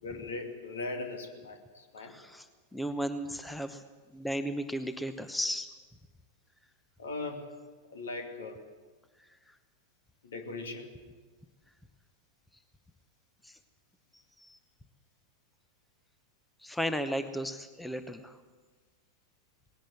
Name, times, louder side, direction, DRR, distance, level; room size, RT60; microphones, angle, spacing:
voice 1, 0.0-2.2 7.0-7.5 7.9-8.6 10.2-10.9, left 3 dB, 65° left, 4 dB, 2.5 m, -39 dB
voice 2, 2.0-2.5 2.7-3.8 4.1-5.7 13.4-13.6 14.4-14.6 16.6-18.4, equal, 5° left, 11 dB, 0.9 m, -35 dB
19.5 x 17.0 x 7.8 m, 1.4 s
figure-of-eight pair, 90°, 0 cm